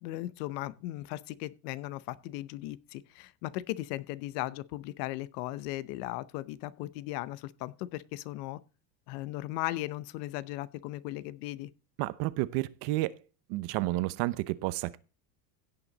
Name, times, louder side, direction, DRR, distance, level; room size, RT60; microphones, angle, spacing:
voice 1, 0.0-8.6 9.1-11.7, left 17 dB, 70° left, 0.9 m, -37 dB
voice 2, 12.0-13.1 13.5-15.0, right 18 dB, 60° right, 0.9 m, -31 dB
16.5 x 5.9 x 4.0 m
cardioid pair, 145°, 49 cm